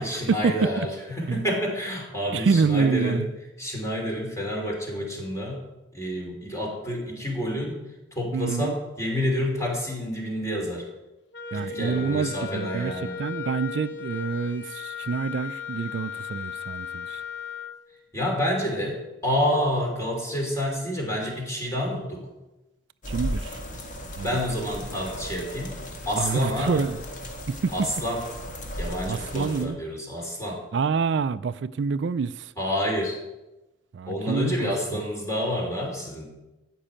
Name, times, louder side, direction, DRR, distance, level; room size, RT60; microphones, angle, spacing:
voice 1, 0.0-3.3 3.6-5.6 5.9-7.8 8.1-10.9 11.5-13.2 18.1-22.3 24.2-25.8 26.0-26.9 27.7-28.2 28.8-30.6 32.6-33.2 34.0-36.3, equal, 15° left, 3.1 m, -28 dB
voice 2, 2.3-3.3 8.3-8.8 11.5-17.2 23.1-23.6 24.2-24.4 26.2-27.0 27.5-27.7 29.1-29.8 30.7-32.5 33.9-34.7, right 5 dB, 75° right, 0.4 m, -27 dB
Wind instrument woodwind instrument, 11.3-17.8, left 7 dB, 70° left, 0.8 m, -36 dB
sound 1, 23.0-29.6, equal, 45° left, 1.8 m, -36 dB
14.0 x 5.4 x 8.9 m
head